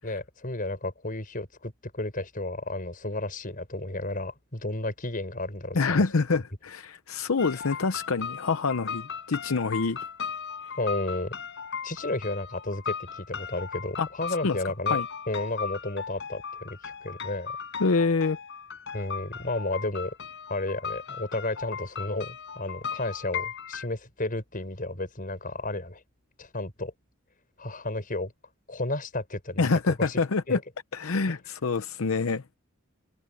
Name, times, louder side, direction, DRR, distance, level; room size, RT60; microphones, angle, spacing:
voice 1, 0.0-6.0 10.8-11.3 11.8-15.0 15.3-17.5 18.9-20.1 20.5-26.0 26.4-26.9 27.6-28.3 28.7-29.7 30.0-30.2 30.5-30.6 31.3-31.4, left 2 dB, 40° left, 6.2 m, -32 dB
voice 2, 5.7-10.0 14.0-14.1 14.4-14.6 14.9-15.1 17.8-18.4 29.6-30.6 30.9-32.4, left 4 dB, 85° left, 0.7 m, -26 dB
sound 1, 7.4-23.9, left 6 dB, 60° left, 4.9 m, -37 dB
head